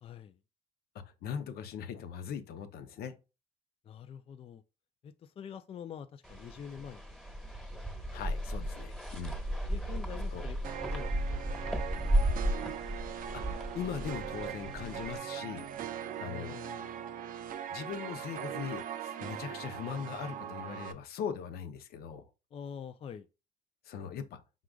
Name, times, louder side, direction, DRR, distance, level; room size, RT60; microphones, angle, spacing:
voice 1, 0.0-0.4 3.8-4.6 5.0-7.0 9.7-12.3 16.2-16.9 22.5-23.3, left 8 dB, 35° left, 0.4 m, -46 dB
voice 2, 1.0-3.1 8.1-9.4 10.3-10.4 13.1-15.7 16.2-16.6 17.7-22.2 23.8-24.4, left 7 dB, 65° left, 0.7 m, -40 dB
sound 1, 6.2-15.2, right 1 dB, 5° left, 1.3 m, -34 dB
sound 2, 10.6-20.9, right 10 dB, 55° right, 0.5 m, -40 dB
4.8 x 3.8 x 2.3 m
cardioid pair, 110°, 17 cm